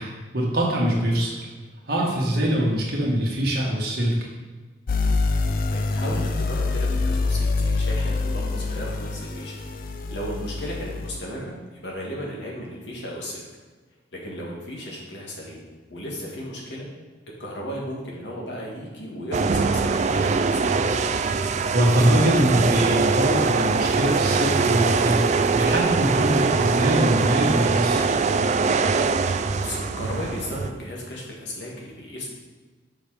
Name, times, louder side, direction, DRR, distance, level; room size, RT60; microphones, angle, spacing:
voice 1, 0.0-1.3 1.8-4.3 21.7-25.2 25.5-28.0, right 1 dB, 55° right, -3 dB, 1.7 m, -23 dB
sound 1, 4.9-11.2, left 3 dB, 50° left, 0.4 m, -25 dB
voice 2, 5.7-9.6 10.1-13.4 14.1-15.6 15.9-16.9 17.4-20.6 29.6-32.3, equal, 70° left, -3 dB, 1.8 m, -35 dB
sound 2, 19.3-30.7, right 4 dB, 40° right, 0.3 m, -22 dB
7.3 x 5.0 x 4.7 m, 1.4 s
head